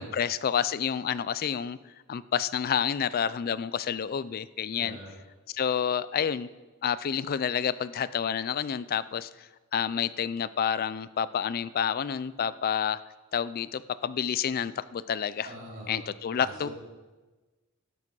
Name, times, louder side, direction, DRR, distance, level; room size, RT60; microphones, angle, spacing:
voice 1, 0.0-1.8 2.1-5.0 5.5-6.5 6.8-13.0 13.3-15.5 15.9-16.7, left 8 dB, 40° left, 17 dB, 0.3 m, -29 dB
voice 2, 4.7-5.1 15.4-16.0 16.4-16.7, equal, 40° right, -5 dB, 4.1 m, -43 dB
12.0 x 8.3 x 6.1 m, 1.2 s
head